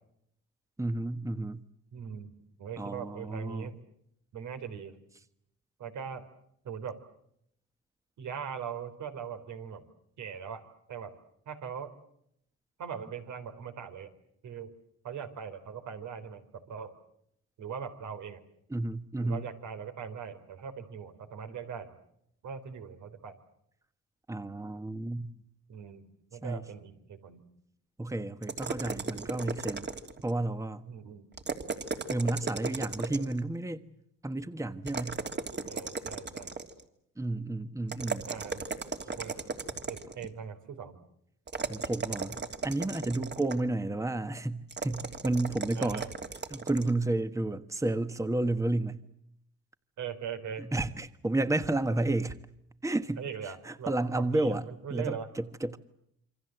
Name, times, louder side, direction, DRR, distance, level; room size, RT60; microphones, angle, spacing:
voice 1, 0.8-1.6 2.8-3.7 18.7-19.5 24.3-25.3 26.4-26.6 28.0-29.9 30.2-30.8 32.1-33.8 34.2-35.2 37.2-38.3 41.7-46.0 46.5-49.0 50.6-52.4 52.8-53.2 53.6-54.6 54.9-55.8, right 2 dB, 10° right, 11 dB, 1.3 m, -31 dB
voice 2, 1.9-2.3 2.6-3.8 4.3-5.0 5.8-6.2 6.6-7.0 8.2-9.8 10.2-10.6 10.9-11.1 11.5-11.9 12.8-14.1 14.4-14.7 15.0-16.9 17.6-18.4 19.2-21.9 22.4-23.4 25.7-27.5 30.9-31.3 35.7-36.6 38.3-38.7 39.1-39.4 39.9-41.0 45.7-46.1 50.0-50.7 53.2-55.3, right 7 dB, 75° right, 8 dB, 4.3 m, -40 dB
sound 1, 28.4-30.3 31.3-33.4 34.9-36.8 37.9-40.3 41.5-43.7 44.7-46.9, right 5 dB, 35° right, 3.1 m, -36 dB
27.5 x 25.0 x 7.9 m, 0.75 s
cardioid pair, 90°, 30 cm